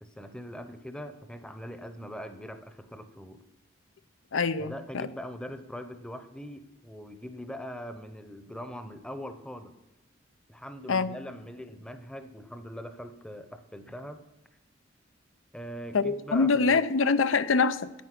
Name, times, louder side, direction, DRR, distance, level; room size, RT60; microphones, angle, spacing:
voice 1, 0.0-3.4 4.6-9.7 10.5-14.2 15.5-16.8, equal, 5° left, 0.7 m, -41 dB
voice 2, 4.3-5.1 10.9-11.2 15.9-17.9, left 4 dB, 90° left, 0.6 m, -25 dB
9.2 x 9.2 x 6.0 m
head